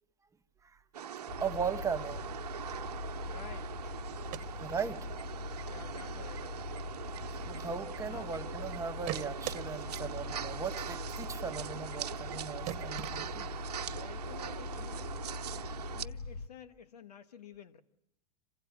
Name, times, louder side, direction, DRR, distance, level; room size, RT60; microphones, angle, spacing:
sound 1, 0.9-16.1, right 9 dB, 85° right, 1.0 m, -42 dB
voice 1, 1.1-2.2 4.6-5.1 7.4-13.5, right 6 dB, 15° right, 8 dB, 1.3 m, -38 dB
sound 2, 1.3-16.5, left 4 dB, 70° left, 1.4 m, -42 dB
voice 2, 3.2-4.0 5.4-6.8 8.0-8.3 13.8-15.1 15.5-17.8, left 7 dB, 90° left, 13 dB, 1.7 m, -52 dB
sound 3, 4.1-5.2 5.6-5.7 6.0-6.4 6.8-8.4 8.7-9.6 10.0-10.1 10.3-10.4 10.7-10.8 11.1-11.2 11.5-11.6 11.9-12.0 12.3-12.4 12.7-13.7, right 15 dB, 40° right, 1.4 m, -42 dB
27.0 x 16.5 x 9.5 m, 0.81 s
hypercardioid pair, 120°, 20 cm